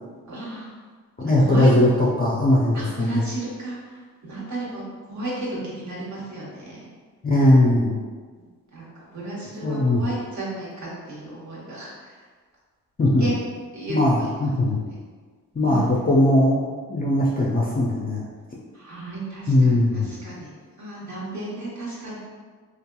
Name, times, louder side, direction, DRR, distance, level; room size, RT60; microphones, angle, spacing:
voice 1, 0.3-0.7 1.2-1.7 2.7-3.8 4.2-4.8 5.1-6.8 8.4-8.5 8.7-8.9 9.1-12.1 13.2-13.4 13.7-14.3 14.6-14.7 15.6-15.8 18.7-20.5 20.8-22.2, right 2 dB, 40° right, -6 dB, 1.2 m, -33 dB
voice 2, 1.2-3.2 7.2-7.9 9.6-10.0 13.0-13.3 13.9-14.8 15.5-18.2 19.5-20.1, left 1 dB, 20° left, -5 dB, 0.5 m, -19 dB
2.7 x 2.5 x 2.2 m, 1.5 s
hypercardioid pair, 45°, 42 cm